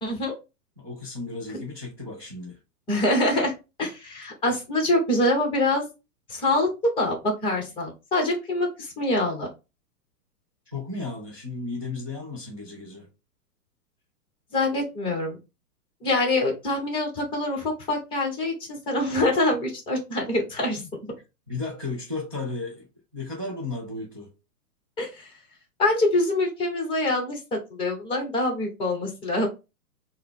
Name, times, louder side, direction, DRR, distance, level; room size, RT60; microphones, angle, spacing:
voice 1, 0.0-0.3 2.9-3.5 3.8-5.8 6.3-7.1 7.4-9.5 14.5-15.4 16.0-18.5 18.9-21.1 25.0-25.3 25.8-29.5, left 2 dB, 10° left, 1.1 m, -25 dB
voice 2, 0.8-2.6 10.7-13.1 21.5-22.9 23.1-24.3, left 3 dB, 20° right, 0.3 m, -34 dB
4.3 x 2.2 x 3.7 m
hypercardioid pair, 150°, 47 cm